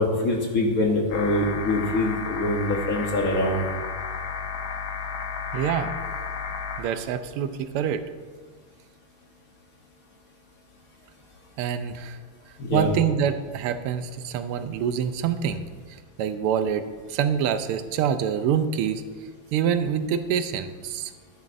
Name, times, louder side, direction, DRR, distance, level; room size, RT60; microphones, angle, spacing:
voice 1, 0.0-3.6 12.6-12.9, left 2 dB, 50° left, 1 dB, 1.2 m, -24 dB
sound 1, 1.1-6.8, left 6 dB, 70° left, 1.8 m, -32 dB
voice 2, 5.5-5.9 6.8-8.0 11.6-12.2 12.7-15.7 16.2-16.8 17.1-19.0 19.5-21.1, right 8 dB, 90° right, 11 dB, 1.5 m, -25 dB
12.5 x 9.8 x 2.5 m, 1.5 s
omnidirectional pair, 2.4 m